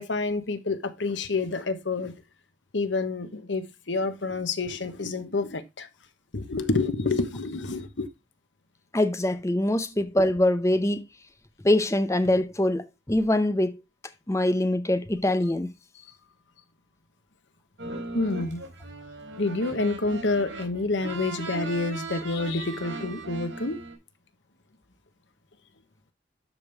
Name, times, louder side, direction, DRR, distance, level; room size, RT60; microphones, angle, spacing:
voice 1, 0.0-2.1 2.7-5.9 6.3-8.1 18.1-18.6 19.4-23.8, left 3 dB, 85° left, 1.2 m, -28 dB
voice 2, 8.9-11.0 11.6-13.8 14.3-15.7, left 1 dB, 15° left, 0.7 m, -23 dB
sound 1, 17.8-23.9, right 3 dB, 85° right, 4.4 m, -38 dB
12.5 x 5.3 x 3.3 m
head